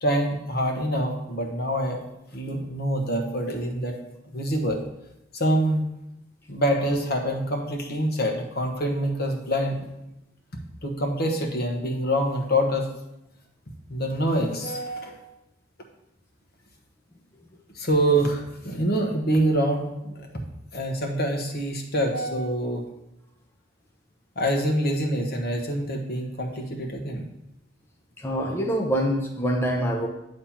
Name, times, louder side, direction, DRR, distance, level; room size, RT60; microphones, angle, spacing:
voice 1, 0.0-2.0 2.3-4.0 4.3-4.8 5.3-5.8 6.5-9.9 10.8-12.9 13.9-15.3 17.7-20.3 20.7-22.8 24.4-27.2, right 1 dB, 55° left, 2 dB, 1.1 m, -25 dB
voice 2, 28.2-30.1, equal, 10° left, 0 dB, 0.6 m, -25 dB
8.8 x 3.3 x 5.7 m, 0.88 s
head